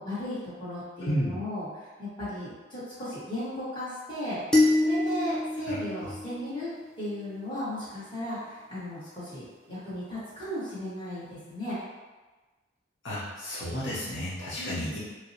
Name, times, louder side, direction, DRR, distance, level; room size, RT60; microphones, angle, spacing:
voice 1, 0.0-1.7 2.0-11.8 14.6-14.8, left 1 dB, 25° left, -11 dB, 1.4 m, -36 dB
voice 2, 1.0-1.4 5.7-6.1 13.0-15.0, equal, 80° left, -8 dB, 0.9 m, -32 dB
sound 1, 4.5-6.9, left 2 dB, 5° left, 0.5 m, -26 dB
4.6 x 2.1 x 2.8 m, 1.2 s
head